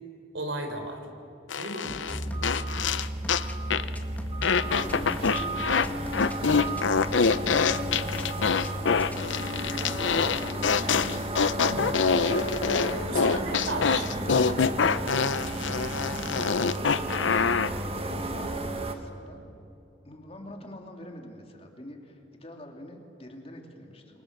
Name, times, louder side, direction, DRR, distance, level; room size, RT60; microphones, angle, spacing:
voice 1, 0.3-1.0 1.6-2.0 11.6-12.0 13.0-14.5, right 2 dB, 85° right, 5 dB, 4.0 m, -35 dB
sound 1, 1.5-3.5 3.7-4.0 4.4-5.9 6.1-17.7, left 5 dB, 80° left, 0.7 m, -25 dB
sound 2, 1.8-9.2, left 1 dB, 10° left, 1.6 m, -43 dB
sound 3, 2.1-18.9, right 1 dB, 30° right, 1.5 m, -33 dB
voice 2, 4.7-6.1 8.3-11.4 13.1-14.0 17.6-19.4 20.0-24.2, left 1 dB, 30° left, 2 dB, 2.7 m, -45 dB
28.5 x 23.5 x 6.6 m, 2.8 s
head